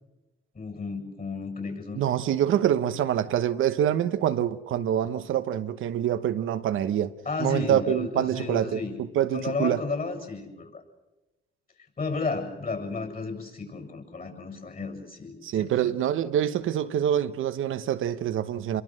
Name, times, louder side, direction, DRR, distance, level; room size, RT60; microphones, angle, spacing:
voice 1, 0.5-2.1 7.3-8.9 9.3-10.8 12.0-16.0, left 3 dB, 45° left, 7.3 m, -33 dB
voice 2, 1.9-7.1 7.4-8.8 9.1-9.8 15.4-18.8, right 10 dB, 80° right, 1.0 m, -25 dB
28.0 x 23.0 x 6.4 m
supercardioid pair, 55°, 20 cm